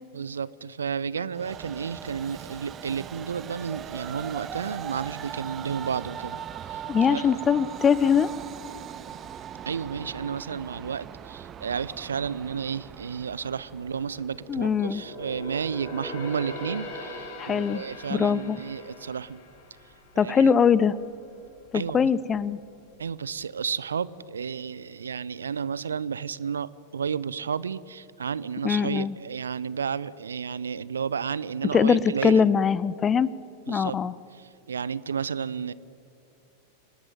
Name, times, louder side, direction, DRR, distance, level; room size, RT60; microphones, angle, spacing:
voice 1, 0.1-6.4 6.7-6.8 7.1-7.4 9.7-19.4 20.1-20.5 21.7-22.1 23.0-32.5 33.7-34.0 34.4-35.7, right 6 dB, 70° right, 20 dB, 0.7 m, -32 dB
Train, 1.3-14.8, right 9 dB, 30° right, 1.0 m, -40 dB
voice 2, 6.9-8.3 14.5-15.0 17.4-17.8 18.1-18.6 20.2-21.0 21.7-22.6 28.6-29.1 31.7-33.3 33.7-34.1, left 7 dB, 20° left, 19 dB, 0.7 m, -22 dB
sound 1, 13.6-21.1 21.4-21.7 22.2-22.9 23.3-23.4, left 1 dB, 50° left, 6.7 m, -41 dB
28.5 x 19.0 x 9.2 m, 2.5 s
figure-of-eight pair, 90°, 0 cm